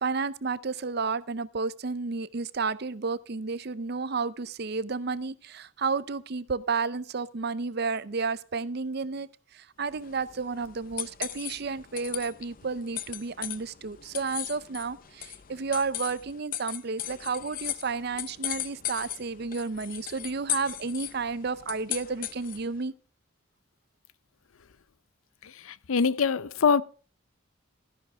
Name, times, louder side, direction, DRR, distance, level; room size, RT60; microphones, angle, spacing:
voice 1, 0.0-22.9, right 4 dB, 50° right, 0.6 m, -32 dB
sound 1, 9.9-22.8, left 13 dB, 45° left, 0.6 m, -38 dB
voice 2, 25.9-26.8, left 5 dB, 90° left, 0.6 m, -23 dB
13.0 x 11.0 x 3.5 m
head